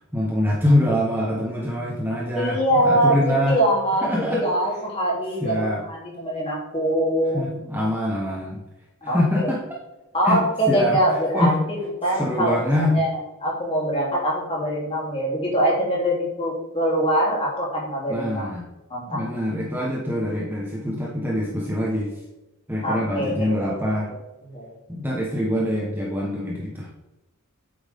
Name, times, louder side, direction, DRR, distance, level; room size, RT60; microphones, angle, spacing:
voice 1, 0.0-3.6 4.0-4.5 5.4-5.8 7.3-8.6 9.0-9.6 10.2-11.0 11.3-11.6 12.1-13.0 18.1-18.7 19.1-22.1 22.7-24.1 24.9-26.9, left 1 dB, 10° right, -3 dB, 1.3 m, -24 dB
voice 2, 2.3-7.5 9.0-9.5 10.1-13.1 13.4-18.5 18.9-19.2 22.8-23.8 24.5-24.7, equal, 25° left, -4 dB, 3.2 m, -23 dB
9.1 x 8.0 x 3.7 m, 1.0 s
head